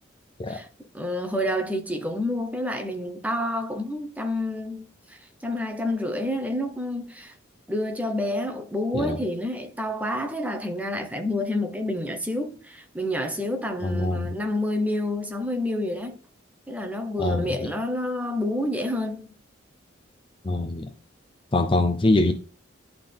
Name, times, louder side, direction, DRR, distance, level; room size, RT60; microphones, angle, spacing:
voice 1, 0.9-7.4 7.7-16.2 16.7-19.3, left 1 dB, 10° right, 0.9 m, -29 dB
voice 2, 13.8-14.3 17.2-17.7 20.4-20.9 21.5-22.3, left 2 dB, 25° left, 0.5 m, -23 dB
10.5 x 3.9 x 3.4 m
head